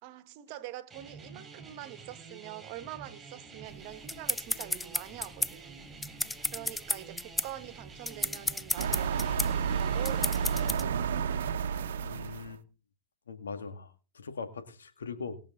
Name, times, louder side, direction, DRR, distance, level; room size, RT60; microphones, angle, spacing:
voice 1, 0.0-11.0, right 14 dB, 50° right, 1.4 m, -45 dB
sound 1, 0.9-10.7, right 4 dB, 15° right, 4.4 m, -49 dB
sound 2, 3.7-10.8, left 2 dB, 5° left, 0.5 m, -33 dB
sound 3, 8.8-12.6, right 7 dB, 75° right, 1.0 m, -30 dB
voice 2, 12.0-12.6 13.3-15.4, left 5 dB, 90° left, 2.0 m, -41 dB
20.5 x 6.9 x 3.8 m
hypercardioid pair, 115°, 0 cm